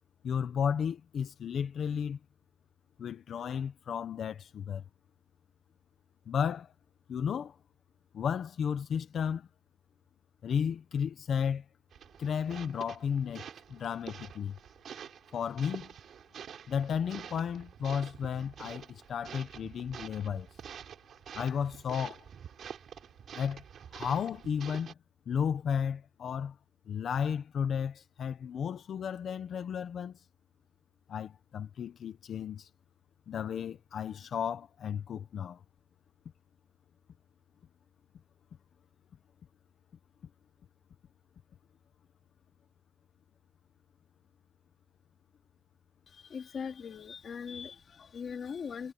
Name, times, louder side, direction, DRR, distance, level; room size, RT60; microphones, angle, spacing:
voice 1, 0.2-2.2 3.0-4.8 6.3-6.7 7.1-7.6 8.1-9.5 10.4-11.6 12.2-13.4 13.7-14.6 15.3-15.9 16.7-20.5 21.3-22.2 23.3-23.6 23.9-24.9 25.3-26.6 26.9-30.2 31.1-32.7 33.3-35.6, left 7 dB, 65° left, 1.0 m, -33 dB
sound 1, 11.9-24.9, right 8 dB, 75° right, 3.7 m, -47 dB
voice 2, 46.1-48.9, left 6 dB, 50° left, 2.8 m, -40 dB
wide cardioid pair, 170°, 0 cm